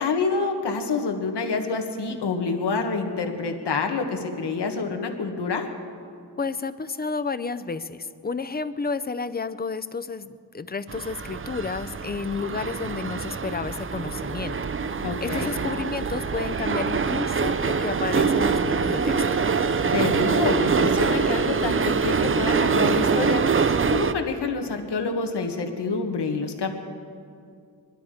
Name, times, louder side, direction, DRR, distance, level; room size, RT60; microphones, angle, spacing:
voice 1, 0.0-5.7 15.0-15.5 19.9-23.4 23.9-26.7, left 4 dB, 85° left, 4 dB, 1.6 m, -27 dB
voice 2, 6.4-14.6 15.2-19.2, left 4 dB, 25° left, 13 dB, 0.5 m, -31 dB
sound 1, 10.9-24.1, right 5 dB, 30° right, 0.5 m, -24 dB
21.5 x 12.5 x 5.0 m, 2.4 s
wide cardioid pair, 125°, 40 cm